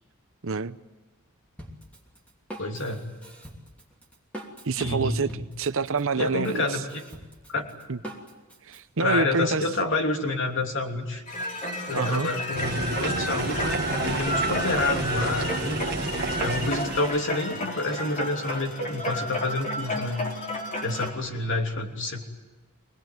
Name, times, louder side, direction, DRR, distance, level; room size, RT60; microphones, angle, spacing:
voice 1, 0.4-0.8 4.6-5.3 5.6-6.6 7.9-8.0 8.6-9.6 11.9-12.3, right 4 dB, 60° right, 12 dB, 0.8 m, -26 dB
Drum kit, 1.6-8.8, equal, 5° left, 3.0 m, -43 dB
voice 2, 2.6-3.1 4.8-5.4 6.2-7.0 7.5-7.7 9.0-11.2 11.9-15.9 16.4-20.2 20.8-22.2, left 2 dB, 55° left, 3 dB, 3.1 m, -28 dB
sound 1, 11.3-21.1, left 1 dB, 35° left, 3.4 m, -31 dB
sound 2, 12.5-17.2, right 3 dB, 45° right, 1.5 m, -30 dB
24.5 x 20.0 x 9.4 m, 1.1 s
head